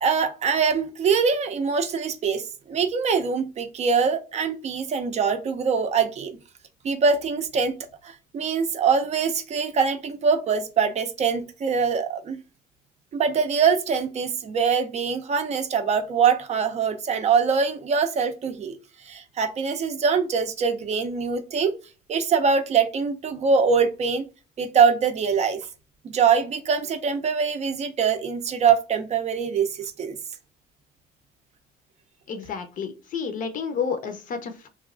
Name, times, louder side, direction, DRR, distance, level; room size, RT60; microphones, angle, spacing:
voice 1, 0.0-6.4 6.8-7.7 8.0-12.4 13.1-18.8 19.0-21.7 22.1-24.2 24.6-25.6 26.0-30.2, right 6 dB, 40° right, 0.4 m, -23 dB
voice 2, 32.3-34.7, left 6 dB, 55° left, 0.6 m, -30 dB
3.0 x 2.2 x 2.4 m
cardioid pair, 110°, 17 cm